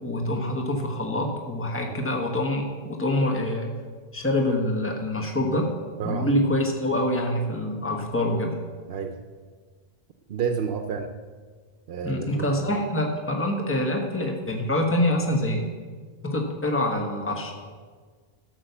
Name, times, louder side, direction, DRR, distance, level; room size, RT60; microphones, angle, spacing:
voice 1, 0.0-3.7 4.1-5.7 6.0-8.6 12.0-15.7 16.2-17.5, left 1 dB, 10° left, 1 dB, 1.3 m, -25 dB
voice 2, 6.0-6.3 8.9-9.2 10.3-11.1 11.9-12.5, right 6 dB, 70° right, 5 dB, 0.9 m, -30 dB
12.5 x 6.1 x 6.9 m, 1.5 s
omnidirectional pair, 1.1 m